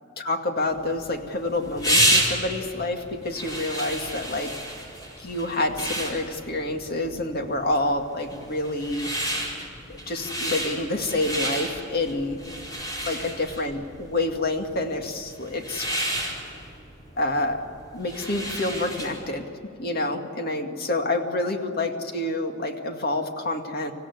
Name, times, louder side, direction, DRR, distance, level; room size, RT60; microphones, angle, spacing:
voice 1, 0.2-4.5 5.2-9.1 9.9-12.4 13.1-15.9 17.2-17.6 17.9-19.4 19.8-23.9, left 2 dB, 55° left, 4 dB, 2.1 m, -28 dB
sound 1, 0.8-19.3, right 1 dB, 20° left, 4.4 m, -30 dB
25.5 x 16.0 x 9.7 m, 2.6 s
head